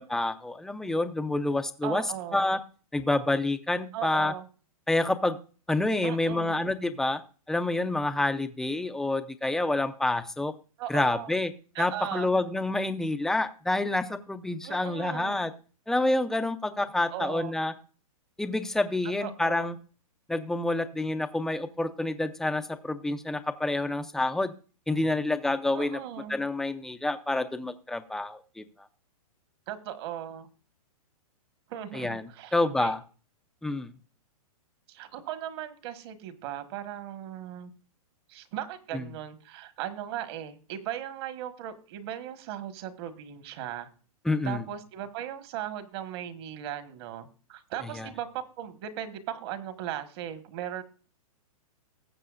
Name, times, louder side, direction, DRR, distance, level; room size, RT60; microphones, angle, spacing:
voice 1, 0.0-2.0 2.3-2.6 2.9-4.3 4.9-5.4 5.7-7.2 7.5-10.5 10.9-11.5 11.8-15.5 15.9-17.7 18.4-19.8 20.3-24.5 24.9-26.0 26.3-28.6 31.9-32.2 32.5-33.0 33.6-33.9 38.9-39.0 44.3-44.6 48.0-48.1, left 2 dB, ahead, 9 dB, 0.5 m, -28 dB
voice 2, 1.8-2.4 3.9-4.5 6.0-6.5 10.8-11.3 11.7-12.4 14.6-15.4 17.1-17.5 19.0-19.7 25.7-26.4 29.7-30.5 31.7-32.9 34.9-37.7 38.3-43.9 44.4-50.8, right 11 dB, 45° right, 10 dB, 1.4 m, -38 dB
19.0 x 7.6 x 2.5 m, 0.38 s
hypercardioid pair, 145°, 19 cm